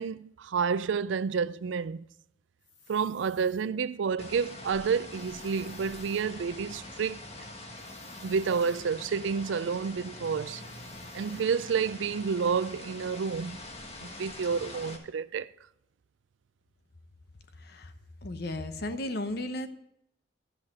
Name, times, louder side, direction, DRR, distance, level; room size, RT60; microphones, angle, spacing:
voice 1, 0.0-2.1 2.9-7.2 8.2-10.6 11.1-13.6 14.0-15.5, right 6 dB, 80° right, 0.4 m, -30 dB
sound 1, 2.6-3.7 5.1-6.3 7.8-8.8 10.5-11.5, left 4 dB, 85° left, 2.4 m, -58 dB
Rain on stoneplates, 4.2-15.0, left 2 dB, 35° left, 1.5 m, -44 dB
voice 2, 17.6-17.9 18.2-19.7, left 1 dB, 60° left, 0.9 m, -34 dB
13.0 x 5.8 x 6.5 m
head